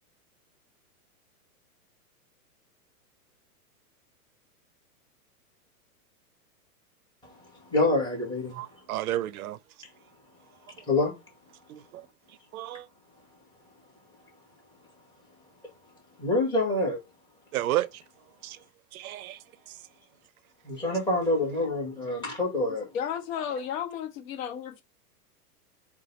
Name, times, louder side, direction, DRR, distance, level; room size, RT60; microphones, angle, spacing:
voice 1, 7.7-8.6 10.9-11.2 16.2-17.0 20.6-22.9, left 2 dB, 10° left, 1.8 m, -26 dB
voice 2, 8.5-9.6 11.7-12.1 12.5-12.9 17.5-18.0 18.4-18.6 18.9-19.8, right 14 dB, 65° right, 0.5 m, -32 dB
voice 3, 22.9-24.8, left 8 dB, 55° left, 1.0 m, -33 dB
3.8 x 2.4 x 4.1 m
hypercardioid pair, 140°, 46 cm